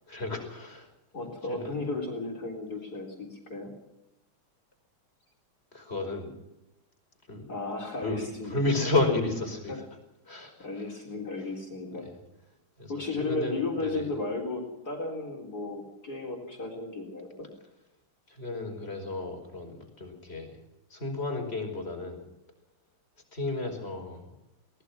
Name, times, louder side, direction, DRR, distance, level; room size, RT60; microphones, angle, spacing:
voice 1, 0.1-0.9 1.5-1.8 5.7-6.3 7.3-7.5 8.0-9.9 10.3-11.0 12.0-12.2 12.8-14.1 18.3-20.6 20.9-22.2 23.3-24.4, left 2 dB, 30° left, 3 dB, 5.3 m, -32 dB
voice 2, 1.1-3.7 7.5-8.5 9.7-9.8 10.6-12.1 12.9-17.5, left 3 dB, 45° left, 0 dB, 4.3 m, -34 dB
22.5 x 19.0 x 6.1 m, 0.90 s
omnidirectional pair, 2.3 m